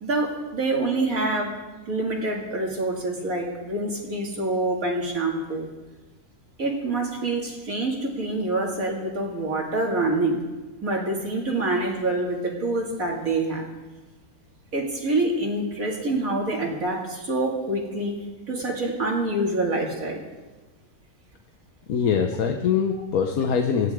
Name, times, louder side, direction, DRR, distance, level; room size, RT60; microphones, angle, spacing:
voice 1, 0.0-1.6 1.9-5.7 6.6-10.4 10.8-13.7 14.7-18.2 18.5-20.2 22.9-23.0, right 2 dB, 70° right, -1 dB, 2.8 m, -26 dB
voice 2, 21.9-23.9, left 6 dB, 75° left, 4 dB, 1.4 m, -23 dB
18.0 x 15.0 x 3.6 m, 1.2 s
omnidirectional pair, 1.5 m